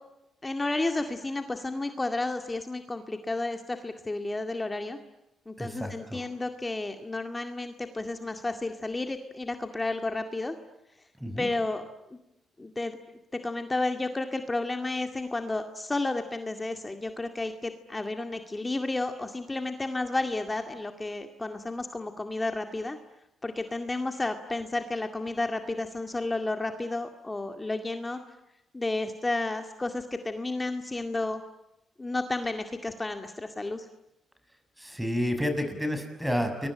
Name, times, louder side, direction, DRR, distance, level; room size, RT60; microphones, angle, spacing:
voice 1, 0.4-5.0 5.5-10.6 11.4-11.8 12.1-12.2 12.6-13.0 13.4-23.0 23.4-28.2 28.7-31.4 32.0-33.9, left 2 dB, 20° left, 6 dB, 2.1 m, -32 dB
voice 2, 5.6-6.3 11.2-11.5 34.8-36.7, equal, 5° right, 8 dB, 6.6 m, -30 dB
29.5 x 23.0 x 8.9 m, 0.91 s
cardioid pair, 90°, 0 cm